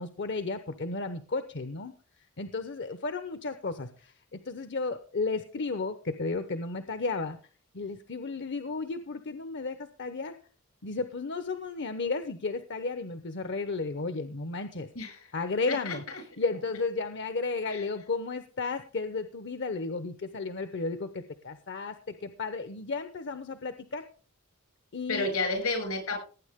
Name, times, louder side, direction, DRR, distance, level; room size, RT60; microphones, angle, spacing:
voice 1, 0.0-1.9 2.4-7.4 7.7-10.4 10.8-14.9 15.3-16.0 16.4-24.1 24.9-25.3, left 3 dB, 55° left, 10 dB, 0.9 m, -33 dB
voice 2, 15.0-15.3 15.7-16.2 17.7-17.8 25.1-26.2, left 3 dB, 80° left, 4 dB, 7.0 m, -31 dB
18.5 x 9.2 x 3.6 m, 0.38 s
head